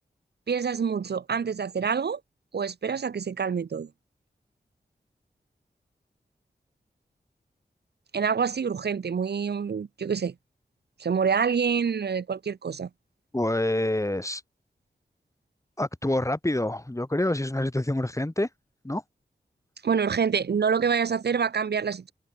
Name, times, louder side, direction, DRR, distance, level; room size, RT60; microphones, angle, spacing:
voice 1, 0.5-2.2 2.5-3.9 8.1-10.3 11.0-12.9 19.8-22.1, right 6 dB, 70° right, 0.8 m, -26 dB
voice 2, 13.3-14.4 15.8-18.5 18.8-19.0, left 1 dB, 15° left, 5.4 m, -27 dB
wide cardioid pair, 65°, 18 cm